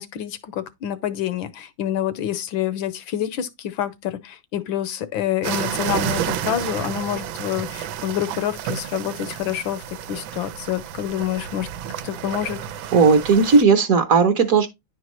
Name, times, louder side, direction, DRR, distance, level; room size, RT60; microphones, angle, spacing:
voice 1, 0.0-11.7 12.0-12.6, left 11 dB, 80° left, 1.6 m, -27 dB
sound 1, 5.4-13.6, right 10 dB, 85° right, 1.4 m, -30 dB
voice 2, 12.9-14.7, right 5 dB, 50° right, 1.2 m, -16 dB
10.5 x 4.5 x 3.0 m
omnidirectional pair, 2.1 m